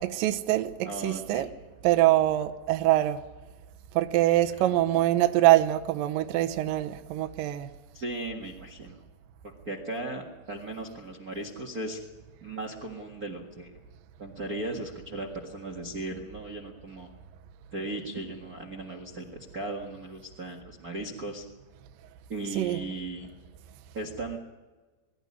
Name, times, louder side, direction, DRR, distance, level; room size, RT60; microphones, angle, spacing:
voice 1, 0.0-1.5 1.8-3.2 3.9-7.7 22.6-22.8, right 14 dB, 75° right, 2.2 m, -24 dB
voice 2, 0.8-1.5 4.6-4.7 7.9-9.0 9.6-12.0 12.4-13.7 14.2-17.1 17.7-19.3 19.5-21.4 22.3-23.3 23.9-24.4, right 2 dB, 60° right, 0.9 m, -37 dB
23.0 x 12.5 x 9.7 m
omnidirectional pair, 4.8 m